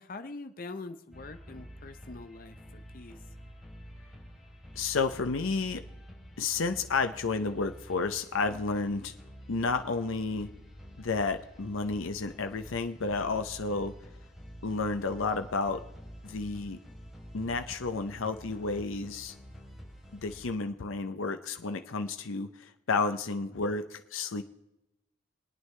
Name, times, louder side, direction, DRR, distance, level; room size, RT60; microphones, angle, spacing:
voice 1, 0.0-3.2, left 3 dB, 45° left, 8 dB, 0.7 m, -44 dB
sound 1, 1.1-20.4, equal, ahead, 3.6 m, -49 dB
voice 2, 4.7-5.8 6.4-9.1 9.5-10.5 11.0-13.9 14.6-15.8 16.2-16.8 17.3-19.3 20.1-24.4, left 4 dB, 90° left, 8 dB, 0.7 m, -31 dB
23.5 x 9.2 x 3.3 m, 0.91 s
head